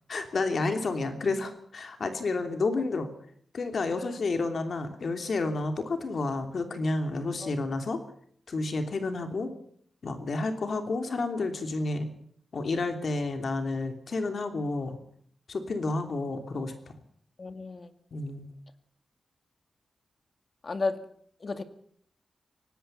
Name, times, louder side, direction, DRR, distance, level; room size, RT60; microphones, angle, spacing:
voice 1, 0.1-3.1 3.5-8.0 8.5-9.5 10.0-12.1 12.5-15.0 15.5-16.7 18.1-18.5, left 3 dB, 60° left, 7 dB, 3.0 m, -30 dB
voice 2, 17.4-17.9 20.6-21.0 21.4-21.6, left 3 dB, 45° left, 10 dB, 2.2 m, -33 dB
25.0 x 18.5 x 5.6 m, 0.62 s
wide cardioid pair, 110°, 0 cm